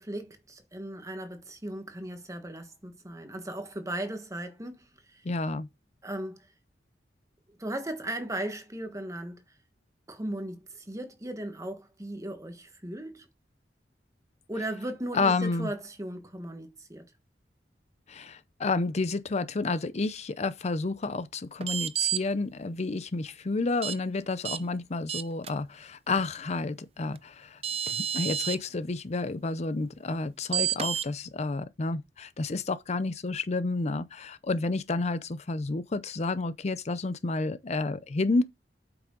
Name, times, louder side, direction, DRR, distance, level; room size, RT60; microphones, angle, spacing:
voice 1, 0.0-4.8 5.1-5.2 6.0-6.5 7.6-9.4 10.1-13.3 14.5-17.1, right 1 dB, 20° right, 1.4 m, -37 dB
voice 2, 5.2-5.7 15.1-15.7 18.1-27.6 27.9-38.4, left 3 dB, 40° left, 0.5 m, -30 dB
sound 1, 21.6-22.2 23.8-24.0 24.4-24.6 25.1-25.5 27.2-27.3 27.6-28.6 30.5-31.1, right 9 dB, 35° right, 0.5 m, -29 dB
8.3 x 6.0 x 3.8 m
head